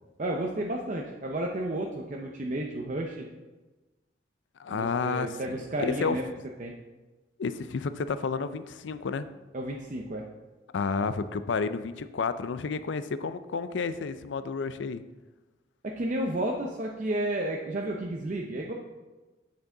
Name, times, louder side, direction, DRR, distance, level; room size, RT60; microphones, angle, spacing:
voice 1, 0.2-3.3 4.7-6.3 6.6-6.7 9.5-10.3 15.8-18.7, right 1 dB, 45° right, 0 dB, 0.6 m, -32 dB
voice 2, 4.6-6.2 7.4-9.3 10.7-15.0, left 5 dB, 90° left, 13 dB, 0.4 m, -31 dB
8.2 x 6.6 x 3.8 m, 1.2 s
head